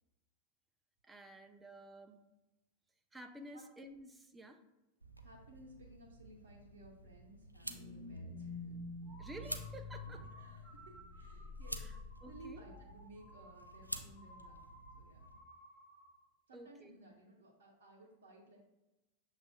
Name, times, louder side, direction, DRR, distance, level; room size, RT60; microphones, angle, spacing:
voice 1, 1.0-2.2 3.1-4.6 9.2-10.2 11.8-11.9 12.2-12.6 16.5-16.9, right 1 dB, 10° right, 6 dB, 0.4 m, -52 dB
sound 1, 5.0-15.4, right 1 dB, 90° right, 0.3 m, -51 dB
voice 2, 5.2-8.8 10.0-11.9 12.3-14.7 14.9-15.3 16.5-18.6, right 2 dB, 65° right, -2 dB, 0.7 m, -58 dB
sound 2, 7.6-13.3 13.6-13.7, left 3 dB, 35° left, 1.2 m, -49 dB
sound 3, 9.0-16.2, right 1 dB, 15° left, 1.0 m, -59 dB
6.7 x 2.4 x 2.2 m, 0.98 s
figure-of-eight pair, 90°, 0 cm